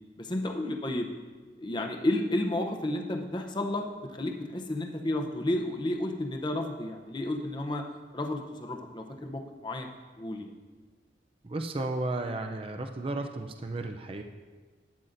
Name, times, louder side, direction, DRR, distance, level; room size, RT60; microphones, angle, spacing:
voice 1, 0.2-1.1 1.6-7.8 8.1-9.9 10.2-10.5, left 1 dB, 25° left, 2 dB, 0.6 m, -32 dB
voice 2, 11.4-14.2, right 2 dB, 30° right, 5 dB, 0.4 m, -33 dB
12.0 x 9.0 x 2.6 m, 1.4 s
head